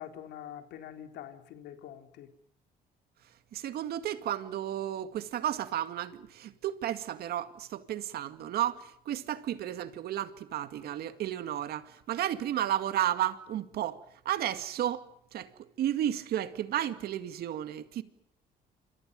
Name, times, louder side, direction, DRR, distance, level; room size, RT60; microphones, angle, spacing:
voice 1, 0.0-2.3, left 10 dB, 80° left, 3.7 m, -45 dB
voice 2, 3.5-15.5 15.8-18.0, right 11 dB, 70° right, 2.1 m, -33 dB
28.5 x 27.0 x 5.4 m
cardioid pair, 110°, 17 cm